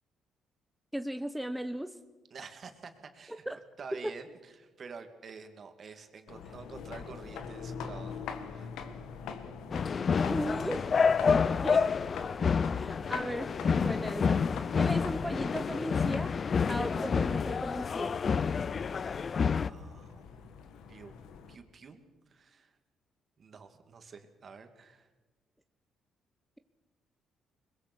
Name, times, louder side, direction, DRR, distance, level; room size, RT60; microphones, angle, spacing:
voice 1, 0.9-2.0 3.3-3.6 10.3-10.8 11.6-11.9 12.6-14.4 14.8-16.3 16.7-18.2, right 1 dB, 5° right, 8 dB, 0.9 m, -36 dB
voice 2, 2.3-3.5 3.8-8.2 8.5-8.7 9.7-9.8 19.6-20.5 20.9-21.1 21.5-22.7 23.4-25.1, right 5 dB, 50° right, 7 dB, 2.5 m, -49 dB
sound 1, 6.3-21.6, left 6 dB, 85° left, 1.8 m, -44 dB
sound 2, 9.7-19.7, left 6 dB, 45° left, 0.6 m, -28 dB
22.0 x 21.5 x 6.3 m, 1.3 s
cardioid pair, 90°, 0 cm